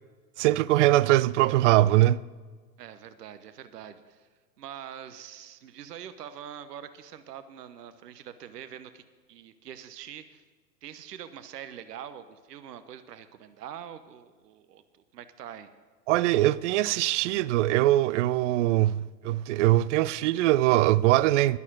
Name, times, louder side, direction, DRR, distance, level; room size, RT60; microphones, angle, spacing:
voice 1, 0.4-2.2 16.1-21.6, right 15 dB, 50° right, 0.5 m, -22 dB
voice 2, 2.8-4.3 4.6-9.0 9.3-10.4 10.8-15.7, right 9 dB, 70° right, 1.1 m, -44 dB
11.5 x 11.0 x 6.3 m
figure-of-eight pair, 95°, 50 cm